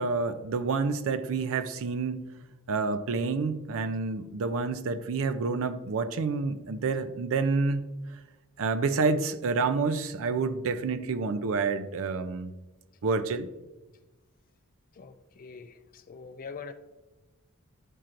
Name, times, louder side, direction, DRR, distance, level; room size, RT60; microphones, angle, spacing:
voice 1, 0.0-2.2 2.7-7.8 8.6-12.5 13.0-13.5, right 4 dB, 65° right, 0.4 m, -28 dB
voice 2, 15.0-16.7, left 5 dB, 40° left, 0.4 m, -44 dB
10.5 x 4.4 x 2.5 m
head